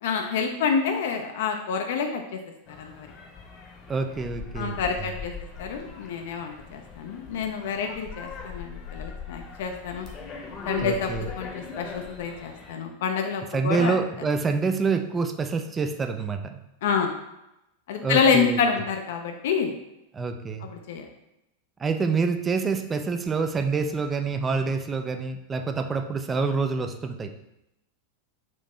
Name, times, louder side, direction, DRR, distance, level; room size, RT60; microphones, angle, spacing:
voice 1, 0.0-2.4 2.7-3.1 4.6-5.3 5.6-10.1 10.6-14.0 16.8-17.2 17.9-19.8 20.6-21.1, left 6 dB, 55° left, 4 dB, 0.4 m, -27 dB
sound 1, 2.7-12.7, left 5 dB, 30° left, 0.8 m, -40 dB
voice 2, 3.9-4.8 10.8-11.3 13.5-16.6 18.0-18.6 20.1-20.7 21.8-27.3, right 4 dB, 20° right, 7 dB, 0.3 m, -27 dB
4.3 x 2.7 x 3.1 m, 0.88 s
figure-of-eight pair, 90°, 0 cm